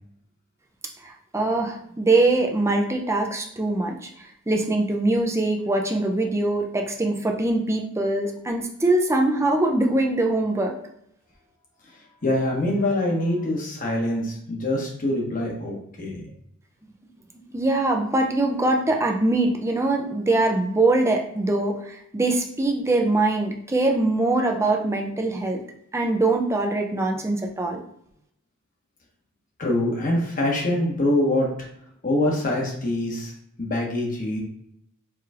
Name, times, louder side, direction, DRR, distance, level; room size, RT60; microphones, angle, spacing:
voice 1, 1.0-4.1 4.5-10.7 17.5-25.6 25.9-27.8, right 2 dB, 10° right, 2 dB, 0.5 m, -23 dB
voice 2, 12.2-16.2 29.6-31.5 32.0-33.3 33.6-34.4, left 1 dB, 40° left, -2 dB, 1.2 m, -24 dB
4.7 x 3.0 x 2.4 m, 0.71 s
head